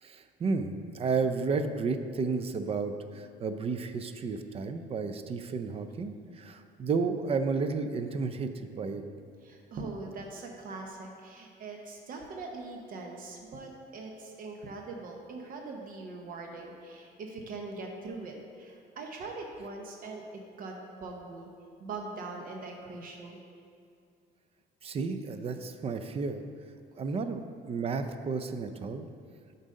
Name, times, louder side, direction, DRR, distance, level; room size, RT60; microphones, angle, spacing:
voice 1, 0.0-9.0 24.8-26.4 27.0-29.1, right 4 dB, 35° right, 9 dB, 0.4 m, -32 dB
voice 2, 9.4-20.2 20.5-21.5 21.8-23.4, right 3 dB, 55° right, 2 dB, 0.8 m, -42 dB
7.3 x 4.0 x 5.3 m, 2.3 s
cardioid pair, 110°, 17 cm